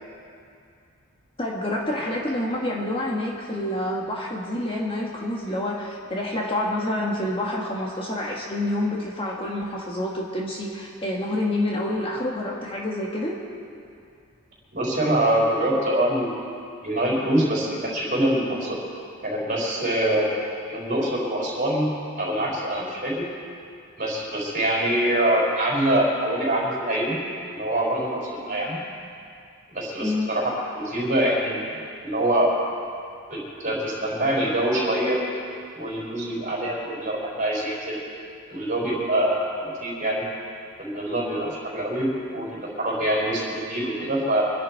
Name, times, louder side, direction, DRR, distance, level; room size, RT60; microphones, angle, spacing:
voice 1, 1.4-13.4 30.0-30.3, left 1 dB, 25° left, -2 dB, 1.5 m, -28 dB
voice 2, 14.7-16.3 16.8-18.8 19.2-20.4 20.7-21.9 22.2-23.2 24.0-27.2 27.5-28.8 29.7-31.7 32.0-32.5 33.3-35.2 35.7-38.0 38.5-40.2 40.8-44.5, right 1 dB, 40° right, -4 dB, 4.8 m, -24 dB
24.5 x 11.0 x 4.6 m, 2.4 s
head